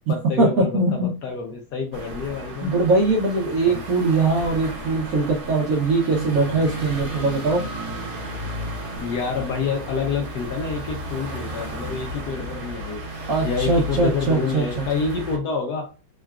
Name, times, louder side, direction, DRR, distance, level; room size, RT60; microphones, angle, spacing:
voice 1, 0.1-2.8 3.7-3.8 9.0-13.0 13.4-15.9, left 5 dB, 75° left, 2 dB, 1.0 m, -28 dB
voice 2, 0.7-1.1 2.6-7.6 13.3-14.8, right 3 dB, 75° right, -1 dB, 0.8 m, -21 dB
sound 1, 1.9-15.4, equal, 60° right, 1.3 m, -33 dB
3.7 x 2.2 x 2.3 m, 0.31 s
omnidirectional pair, 2.1 m